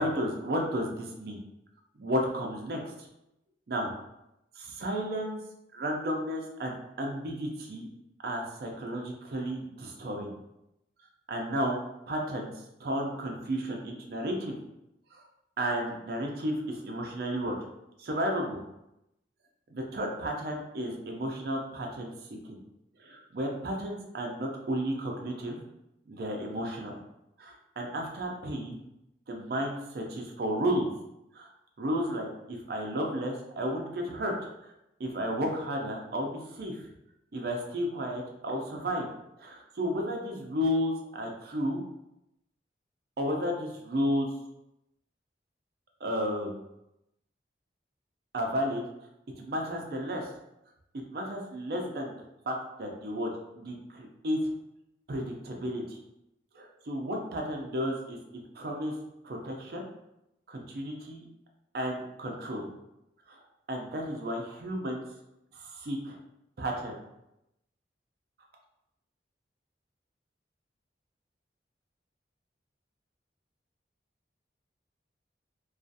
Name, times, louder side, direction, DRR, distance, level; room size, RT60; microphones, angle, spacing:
voice 1, 0.0-1.4 2.0-2.8 3.7-3.9 4.6-5.4 5.7-7.9 8.2-10.3 11.3-11.8 12.1-12.5 12.8-14.6 15.1-15.2 15.6-17.5 18.0-18.6 19.7-22.1 22.5-22.6 23.0-25.6 26.1-27.0 27.4-28.8 29.3-30.9 31.3-31.5 31.8-34.5 35.0-36.8 37.3-39.1 39.4-41.8 43.2-44.3 46.0-46.6 48.3-48.8 49.4-50.3 50.9-52.1 52.5-53.3 53.5-54.4 55.1-56.0 56.5-58.2 58.6-58.9 59.2-59.8 60.5-61.2 61.7-62.7 63.3-63.4 63.7-65.0 65.5-66.2 66.6-67.0, equal, 55° right, 1 dB, 0.4 m, -32 dB
2.3 x 2.3 x 2.6 m, 0.86 s
head